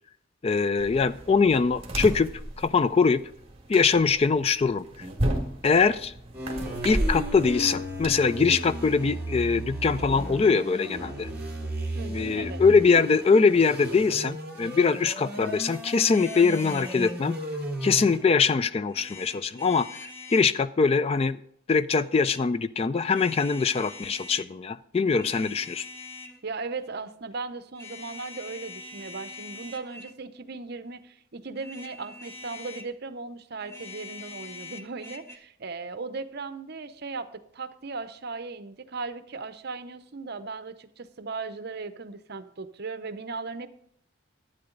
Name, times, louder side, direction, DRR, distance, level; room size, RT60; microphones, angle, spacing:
voice 1, 0.4-2.3 2.6-3.2 3.7-5.1 5.6-6.1 6.8-11.3 12.0-17.3 17.8-21.4 21.7-25.8, left 5 dB, 30° left, 15 dB, 0.3 m, -23 dB
sound 1, 0.8-8.1, right 1 dB, 30° right, 1.7 m, -33 dB
sound 2, 6.3-18.2, equal, 5° right, 2.9 m, -35 dB
voice 2, 11.9-12.6 26.4-43.7, right 4 dB, 50° right, 11 dB, 0.7 m, -37 dB
sound 3, 16.1-17.2 18.9-20.5 22.0-22.4 23.1-24.5 25.0-26.4 27.7-30.2 31.5-32.9 33.6-35.4, left 4 dB, 10° left, 0.8 m, -43 dB
12.0 x 9.2 x 3.9 m, 0.66 s
head